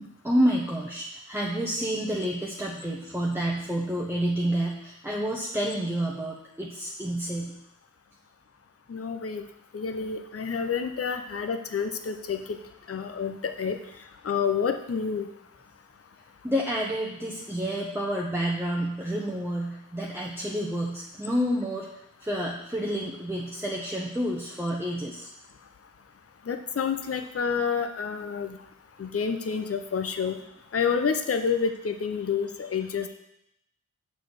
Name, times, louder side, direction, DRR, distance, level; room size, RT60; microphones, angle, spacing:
voice 1, 0.0-7.5 16.4-21.9 22.2-25.3, equal, 5° right, -3 dB, 0.9 m, -29 dB
voice 2, 8.9-9.4 9.7-12.4 12.9-13.8 14.2-15.3 26.5-28.6 29.0-30.3 30.7-33.1, left 6 dB, 45° left, 7 dB, 0.6 m, -28 dB
6.6 x 4.1 x 6.5 m, 0.81 s
wide cardioid pair, 55°, 32 cm